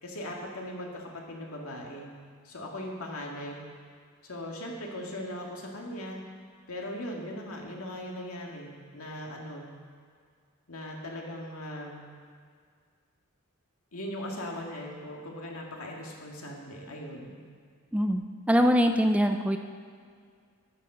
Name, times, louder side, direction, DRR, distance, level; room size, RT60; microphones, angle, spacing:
voice 1, 0.0-2.1 2.4-3.6 4.2-6.2 6.7-9.7 10.7-12.0 13.9-17.4, left 1 dB, 80° left, -1 dB, 2.0 m, -39 dB
voice 2, 17.9-19.6, equal, 5° right, 6 dB, 0.4 m, -23 dB
11.5 x 7.6 x 6.7 m, 2.1 s
head